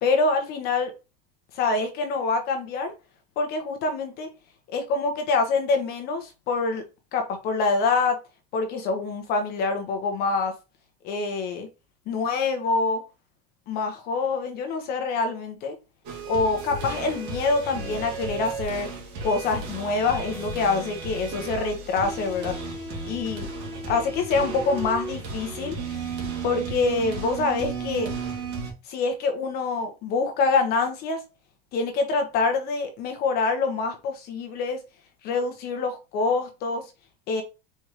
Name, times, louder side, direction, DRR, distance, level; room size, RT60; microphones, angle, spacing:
voice 1, 0.0-0.9 1.5-2.9 3.4-4.3 4.7-6.8 7.1-8.2 8.5-10.5 11.0-11.7 12.1-13.0 13.7-15.8 16.3-18.9 19.2-22.6 23.0-23.5 23.9-25.8 26.4-28.1 28.9-31.2 31.7-34.8 35.2-36.8 37.3-37.4, left 4 dB, 45° left, 1.0 m, -25 dB
sound 1, 16.0-28.7, right 4 dB, 50° right, 1.9 m, -34 dB
4.7 x 3.5 x 2.9 m
cardioid pair, 155°, 21 cm